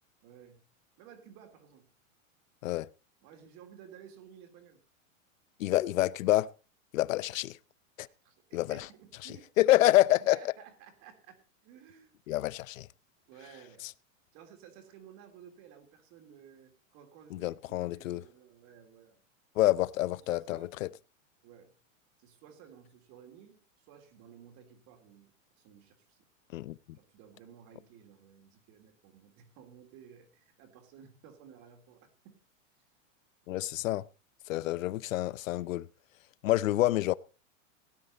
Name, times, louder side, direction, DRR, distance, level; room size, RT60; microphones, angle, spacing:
voice 1, 0.2-0.7 1.0-1.9 3.2-4.8 8.0-9.6 10.2-12.1 13.3-13.9 14.3-19.2 20.2-20.9 21.4-21.7 22.2-26.2 26.9-32.4, right 8 dB, 45° right, 3.3 m, -55 dB
voice 2, 5.6-6.5 6.9-7.6 8.0-8.1 8.5-8.8 9.6-10.4 12.3-12.9 17.3-18.2 19.6-20.9 26.5-26.7 33.5-34.0 34.5-35.9 36.4-37.1, left 16 dB, 75° left, 0.7 m, -27 dB
17.0 x 9.9 x 4.1 m
supercardioid pair, 140°, 40 cm